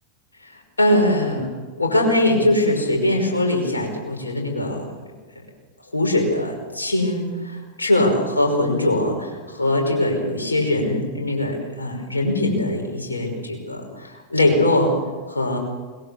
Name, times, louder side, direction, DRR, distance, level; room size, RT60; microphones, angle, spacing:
voice 1, 0.8-1.5 1.8-4.9 5.9-14.9 15.3-15.6, left 1 dB, 85° left, 1 dB, 5.5 m, -21 dB
22.0 x 21.5 x 7.2 m, 1.3 s
figure-of-eight pair, 90°, 0 cm